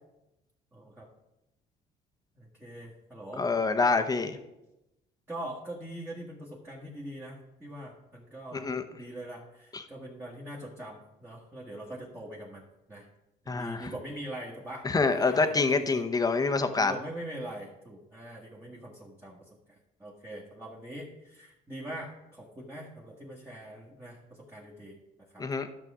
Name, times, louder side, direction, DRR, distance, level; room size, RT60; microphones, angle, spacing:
voice 1, 0.7-1.1 2.3-3.5 5.3-8.7 8.9-13.1 13.5-16.0 16.8-19.4 20.0-25.0 25.3-25.4, right 1 dB, 10° right, -4 dB, 1.7 m, -42 dB
voice 2, 3.4-4.4 8.5-8.8 9.7-9.8 13.5-13.9 14.8-16.9 25.4-25.7, left 4 dB, 20° left, 7 dB, 0.9 m, -26 dB
12.0 x 6.8 x 3.7 m, 0.92 s
cardioid pair, 110°, 17 cm